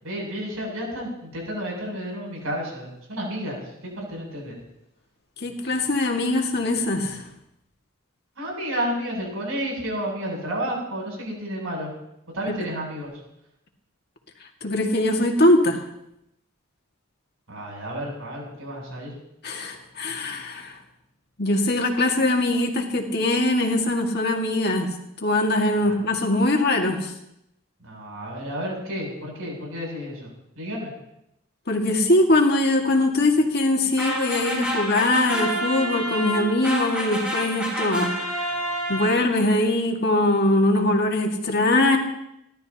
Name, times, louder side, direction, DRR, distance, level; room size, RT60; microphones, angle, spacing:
voice 1, 0.0-4.6 8.4-11.9 12.3-13.2 17.5-19.1 25.8-26.0 27.8-30.3 30.6-30.9, equal, 80° right, -1 dB, 7.9 m, -31 dB
voice 2, 5.4-7.2 14.6-15.8 19.4-20.8 21.4-24.9 25.2-27.1 31.7-38.1 38.9-42.0, left 1 dB, 50° left, 2 dB, 2.0 m, -22 dB
sound 1, 34.0-39.5, equal, 5° right, 6.0 m, -28 dB
29.5 x 12.5 x 2.9 m, 0.82 s
head